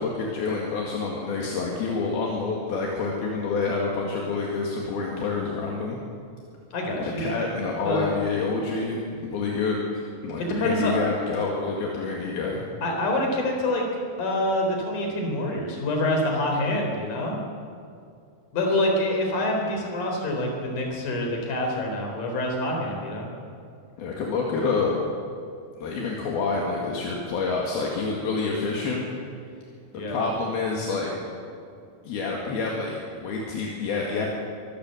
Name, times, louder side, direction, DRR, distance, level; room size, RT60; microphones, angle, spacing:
voice 1, 0.0-6.0 7.0-12.6 24.0-25.0 25.8-29.1 29.9-31.1 32.0-34.3, left 4 dB, 70° left, -2 dB, 3.8 m, -28 dB
voice 2, 6.7-7.3 7.8-8.2 10.4-11.0 12.8-13.8 14.2-17.4 18.5-23.3 29.9-30.2, left 1 dB, 55° left, 1 dB, 5.2 m, -26 dB
24.0 x 15.5 x 7.9 m, 2.4 s
omnidirectional pair, 4.5 m